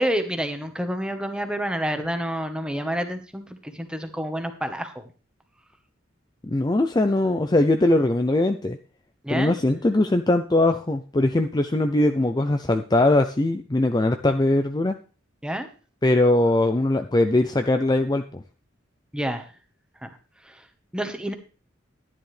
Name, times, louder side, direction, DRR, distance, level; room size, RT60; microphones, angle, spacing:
voice 1, 0.0-5.1 9.2-9.6 15.4-15.7 19.1-19.4 20.0-20.1 20.5-20.6 20.9-21.3, equal, 5° right, 7 dB, 1.1 m, -28 dB
voice 2, 6.4-8.8 9.3-15.0 16.0-18.4, left 2 dB, 20° left, 7 dB, 0.5 m, -21 dB
11.5 x 10.5 x 3.3 m, 0.36 s
head